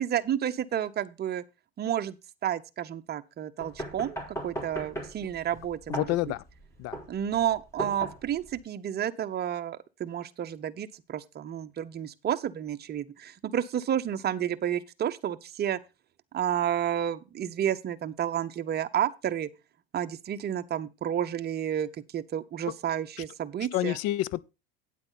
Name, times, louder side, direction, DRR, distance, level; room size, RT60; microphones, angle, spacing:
voice 1, 0.0-1.4 1.8-2.2 2.4-6.1 7.1-15.8 16.3-19.5 19.9-24.0, right 10 dB, 35° right, 0.9 m, -31 dB
sound 1, 3.6-8.6, right 1 dB, 10° left, 4.0 m, -38 dB
voice 2, 5.9-6.4 6.8-7.0 23.7-24.4, left 16 dB, 55° left, 0.6 m, -28 dB
9.2 x 8.3 x 4.1 m
hypercardioid pair, 90°, 30 cm